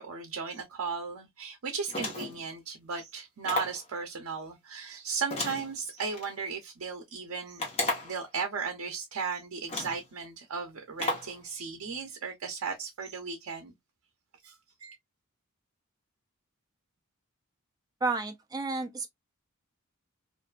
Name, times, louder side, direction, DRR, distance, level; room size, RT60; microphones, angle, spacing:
voice 1, 0.0-7.6 8.0-13.7 14.4-14.5 14.8-15.0, right 5 dB, 80° right, 0.6 m, -36 dB
sound 1, 1.9-2.5 3.4-3.8 5.3-6.3 7.6-8.2 9.1-9.2 9.7-10.1 11.0-11.4, left 2 dB, 30° left, 1.0 m, -33 dB
voice 2, 18.0-19.1, right 3 dB, 20° right, 0.4 m, -31 dB
2.5 x 2.3 x 2.3 m
head